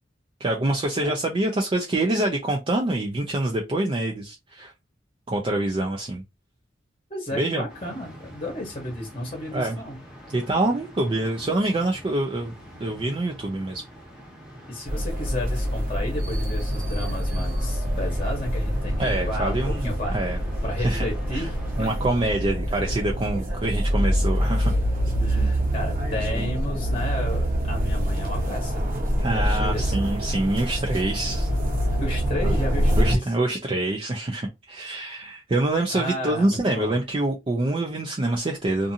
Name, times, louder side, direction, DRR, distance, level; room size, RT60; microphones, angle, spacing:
voice 1, 0.4-4.7 5.3-6.2 7.3-7.6 9.5-9.8 10.3-12.5 12.8-13.8 19.0-20.4 20.8-21.1 21.3-21.5 21.8-24.7 29.2-31.5 32.4-32.5 33.0-38.9, right 2 dB, 30° right, 0.4 m, -25 dB
voice 2, 7.1-10.0 14.7-20.2 20.6-22.0 22.7-23.0 25.2-28.8 29.3-29.9 32.0-33.2 35.9-36.9, left 1 dB, 30° left, 0.9 m, -32 dB
sound 1, 7.7-22.1, equal, 5° right, 0.8 m, -44 dB
sound 2, 14.9-33.2, equal, 45° right, 0.8 m, -25 dB
2.5 x 2.5 x 2.7 m
head